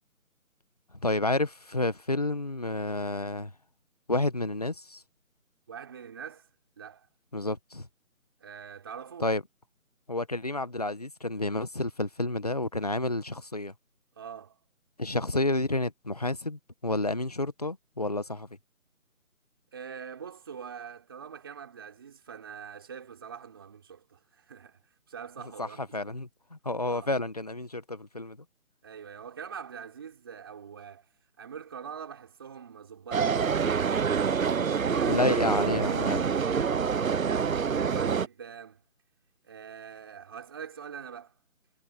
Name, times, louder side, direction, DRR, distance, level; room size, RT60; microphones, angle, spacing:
voice 1, 0.9-3.5 4.1-5.0 7.3-7.9 9.2-9.4 10.1-13.7 15.0-18.5 25.6-28.4 35.1-36.3, left 2 dB, 25° left, 1.2 m, -30 dB
voice 2, 5.7-6.5 6.8-7.1 8.4-9.3 14.2-14.6 19.7-24.8 25.1-26.2 26.9-27.1 28.8-31.1 31.4-35.3 37.7-38.8 39.4-41.4, right 7 dB, 15° right, 3.9 m, -44 dB
sound 1, 33.1-38.3, right 6 dB, 70° right, 0.8 m, -26 dB
figure-of-eight pair, 175°, 42 cm